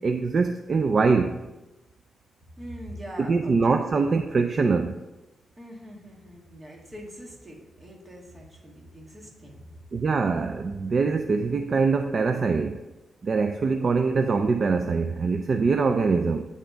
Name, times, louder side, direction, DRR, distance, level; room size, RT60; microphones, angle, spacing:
voice 1, 0.0-1.4 3.3-5.0 9.9-12.8 13.2-16.5, right 4 dB, 45° right, 6 dB, 0.4 m, -23 dB
voice 2, 2.6-4.2 5.6-9.8, equal, 25° right, -2 dB, 1.9 m, -43 dB
9.9 x 3.6 x 5.2 m, 1.0 s
cardioid pair, 105°, 0 cm